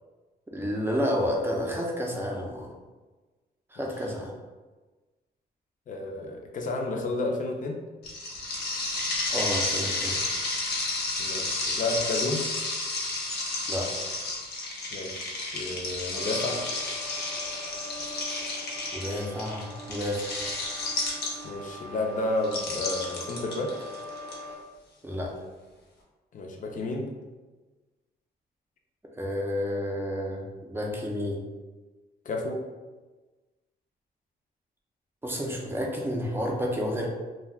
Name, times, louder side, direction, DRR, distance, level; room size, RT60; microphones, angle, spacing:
voice 1, 0.5-2.7 3.7-4.3 9.3-10.2 13.7-13.9 18.9-20.3 25.0-25.3 29.2-31.4 35.2-37.1, equal, 10° right, -1 dB, 0.5 m, -30 dB
voice 2, 5.9-7.8 11.2-12.4 14.9-16.6 21.4-23.9 26.3-27.1 32.3-32.6, left 2 dB, 50° left, 1 dB, 0.5 m, -31 dB
sound 1, 8.0-21.7 22.4-24.3, left 2 dB, 75° left, 0.8 m, -31 dB
sound 2, 16.1-24.5, left 1 dB, 80° right, 0.5 m, -42 dB
2.2 x 2.2 x 3.4 m, 1.2 s
cardioid pair, 115°, 18 cm